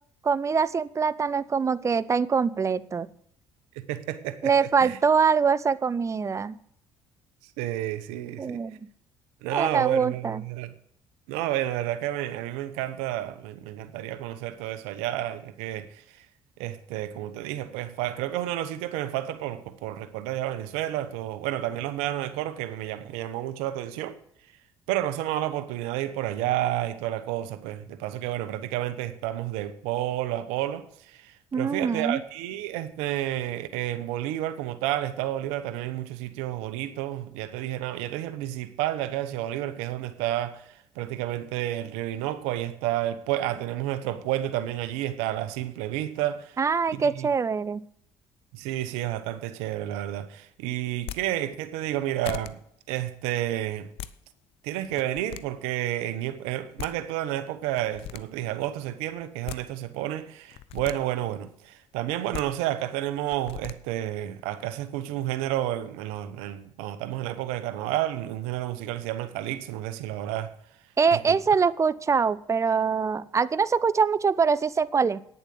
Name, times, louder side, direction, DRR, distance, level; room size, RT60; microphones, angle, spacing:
voice 1, 0.2-3.1 4.4-6.5 8.4-8.8 9.5-10.4 31.5-32.2 46.6-47.8 71.0-75.2, right 5 dB, 30° right, 0.6 m, -24 dB
voice 2, 3.8-5.0 7.6-8.6 9.4-10.7 11.3-15.9 16.6-24.2 24.9-40.6 41.0-46.6 46.9-47.3 48.5-52.6 52.9-53.9 54.6-70.5 71.1-71.4, right 13 dB, 85° right, 0.9 m, -30 dB
sound 1, 50.9-51.2 51.9-52.0 52.2-52.5 53.7-54.1 54.8-55.4 56.5-56.6 56.8-56.9 57.7-58.2 59.2-59.6 60.5-61.0 62.1-62.4 63.3-63.7, left 12 dB, 70° left, 0.6 m, -38 dB
9.8 x 7.2 x 7.7 m
supercardioid pair, 75°, 10 cm